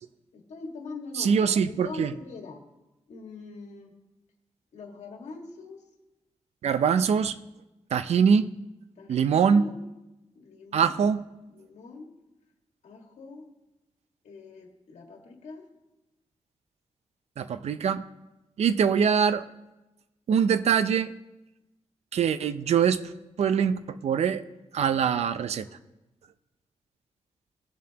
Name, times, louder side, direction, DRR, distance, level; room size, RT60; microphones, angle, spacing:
voice 1, 0.3-2.6 3.1-3.9 4.7-5.8 9.0-9.8 10.3-11.0 11.5-12.1 12.8-13.5 14.2-15.6 24.9-25.7, left 3 dB, 80° left, 1 dB, 1.8 m, -43 dB
voice 2, 1.2-2.1 6.6-7.3 7.9-8.5 9.1-9.7 10.7-11.2 17.4-18.0 18.6-19.4 20.3-21.1 22.1-23.0 23.4-24.4 24.7-25.7, right 7 dB, 65° right, 12 dB, 0.5 m, -23 dB
18.0 x 7.3 x 2.9 m, 0.99 s
wide cardioid pair, 155°, 12 cm